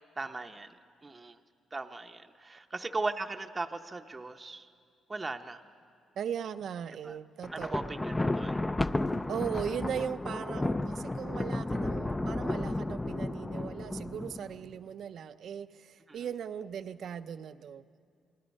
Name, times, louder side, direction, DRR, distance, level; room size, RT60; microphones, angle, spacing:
voice 1, 0.2-0.8 1.0-1.4 1.7-4.7 5.1-5.6 7.0-7.2 7.5-8.6 16.1-16.2, right 3 dB, 25° right, 5 dB, 0.7 m, -38 dB
voice 2, 6.2-7.9 9.3-17.8, right 8 dB, 65° right, 12 dB, 0.6 m, -38 dB
Thunder, 7.4-14.7, left 2 dB, 15° left, 0.5 m, -33 dB
28.0 x 19.5 x 5.4 m, 2.3 s
cardioid pair, 90°, 0 cm